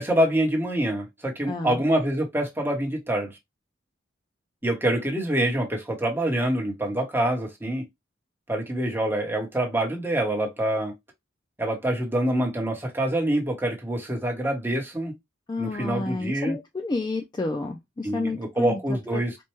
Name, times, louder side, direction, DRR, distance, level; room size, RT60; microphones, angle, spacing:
voice 1, 0.0-3.3 4.6-7.8 8.5-10.9 11.6-15.1 15.6-16.6 18.0-19.4, right 1 dB, 10° right, 1.0 m, -26 dB
voice 2, 1.5-1.8 15.5-19.2, left 2 dB, 20° left, 0.3 m, -30 dB
4.4 x 2.2 x 2.9 m
head